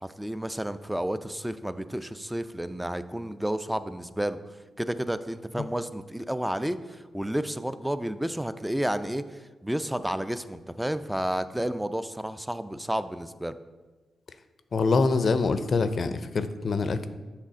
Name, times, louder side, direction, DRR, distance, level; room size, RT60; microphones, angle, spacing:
voice 1, 0.0-4.4 4.8-13.6, right 1 dB, 5° right, 12 dB, 0.4 m, -31 dB
voice 2, 14.7-17.1, left 4 dB, 55° left, 11 dB, 0.4 m, -25 dB
7.4 x 3.4 x 5.0 m, 1.3 s
hypercardioid pair, 40°, 0 cm